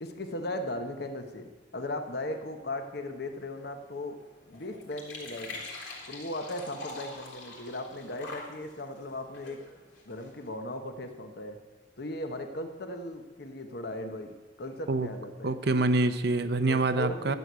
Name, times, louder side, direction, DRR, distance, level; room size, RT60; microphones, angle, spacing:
voice 1, 0.0-4.2 4.5-5.6 6.1-9.6 10.1-11.6 12.0-15.6 16.7-17.4, left 1 dB, 60° left, 6 dB, 1.0 m, -37 dB
sound 1, 3.3-10.5, left 2 dB, 90° left, 3.2 m, -45 dB
voice 2, 15.4-17.4, right 2 dB, 60° right, 11 dB, 0.7 m, -26 dB
12.0 x 7.8 x 8.1 m, 1.3 s
head